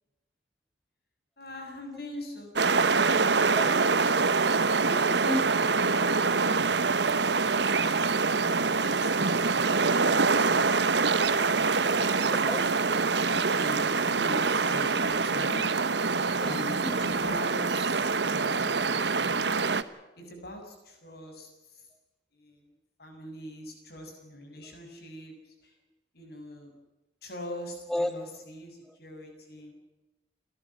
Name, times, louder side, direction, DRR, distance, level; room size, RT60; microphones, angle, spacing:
voice 1, 1.4-3.9 8.4-10.4 11.8-12.4 12.9-15.7 16.4-19.4 20.1-21.9 22.3-22.7 23.0-25.7 26.1-26.7 27.2-29.7, equal, 60° left, 4 dB, 7.0 m, -42 dB
sound 1, 2.6-19.8, right 4 dB, 75° right, 1.1 m, -25 dB
voice 2, 4.9-6.8 12.3-12.7 16.4-16.6 16.8-17.0 27.9-28.1, left 1 dB, ahead, 11 dB, 0.7 m, -34 dB
29.5 x 12.0 x 9.8 m, 1.0 s
head